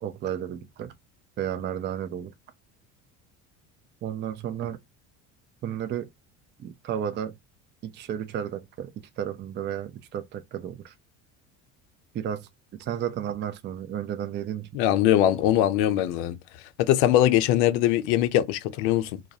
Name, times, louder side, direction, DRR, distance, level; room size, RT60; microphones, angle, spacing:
voice 1, 0.0-0.9 1.4-2.3 4.0-4.8 5.6-6.1 6.6-7.4 7.8-8.9 9.2-10.9 12.1-12.5 12.8-14.7, right 9 dB, 35° right, 0.4 m, -32 dB
voice 2, 14.7-16.4 16.8-19.2, left 12 dB, 85° left, 0.5 m, -21 dB
2.3 x 2.0 x 2.7 m
supercardioid pair, 110°, 34 cm